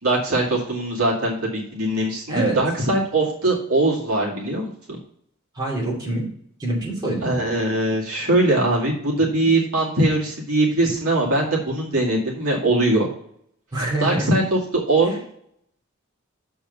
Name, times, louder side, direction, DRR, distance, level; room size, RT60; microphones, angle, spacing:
voice 1, 0.0-5.0 7.2-13.1 14.0-15.1, right 2 dB, 75° right, -3 dB, 2.2 m, -21 dB
voice 2, 5.5-6.3 6.6-7.4 13.7-14.3, right 2 dB, 20° right, -6 dB, 2.9 m, -25 dB
7.0 x 4.6 x 6.7 m, 0.67 s
head